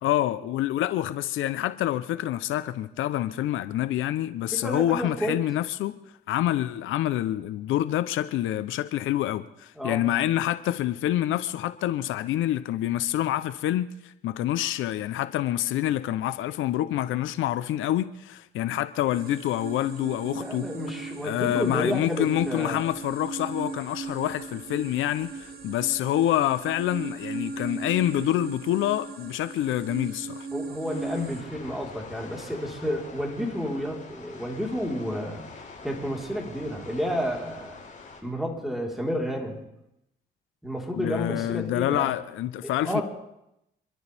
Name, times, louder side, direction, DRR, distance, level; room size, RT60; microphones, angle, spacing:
voice 1, 0.0-5.9 6.3-20.7 21.2-30.5 40.9-43.0, left 13 dB, 85° left, 0.7 m, -27 dB
voice 2, 4.6-5.4 9.8-10.0 20.4-22.8 30.5-35.4 35.8-37.8 38.2-39.6 40.6-42.1 42.8-43.0, equal, ahead, 4.2 m, -30 dB
sound 1, 19.1-31.4, right 4 dB, 50° right, 2.6 m, -38 dB
sound 2, 30.9-38.2, left 4 dB, 40° left, 6.5 m, -45 dB
28.5 x 12.5 x 3.5 m
cardioid pair, 90°, 20 cm